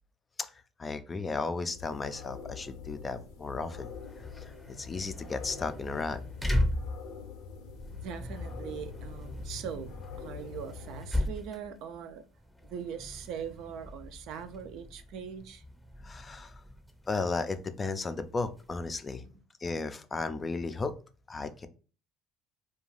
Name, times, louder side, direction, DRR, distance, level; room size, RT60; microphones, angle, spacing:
voice 1, 0.8-3.9 4.4-4.5 4.8-6.2 16.0-16.6 17.1-19.2 19.6-20.9 21.3-21.7, left 3 dB, 25° left, 0.3 m, -34 dB
sound 1, 1.7-11.1, left 6 dB, 90° left, 0.5 m, -45 dB
sound 2, 3.8-19.1, left 1 dB, ahead, 0.7 m, -38 dB
voice 2, 8.0-12.2 12.6-15.6, right 7 dB, 70° right, 0.4 m, -41 dB
2.4 x 2.3 x 3.1 m
supercardioid pair, 90°, 0 cm